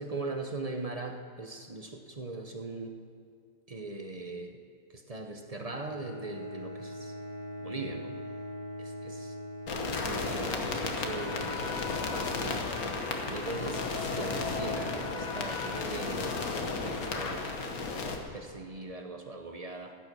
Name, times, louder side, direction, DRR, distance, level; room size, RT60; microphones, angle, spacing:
voice 1, 0.0-3.0 3.7-4.6 4.9-7.1 7.6-8.2 8.8-9.3 9.9-12.5 13.2-16.4 16.7-17.5 18.3-19.9, right 2 dB, 30° right, 4 dB, 0.8 m, -40 dB
Bowed string instrument, 5.6-12.2, equal, 70° right, 1.9 m, -42 dB
sound 1, 9.7-18.2, left 3 dB, 80° left, 1.7 m, -33 dB
15.5 x 9.4 x 6.1 m, 2.4 s
omnidirectional pair, 1.5 m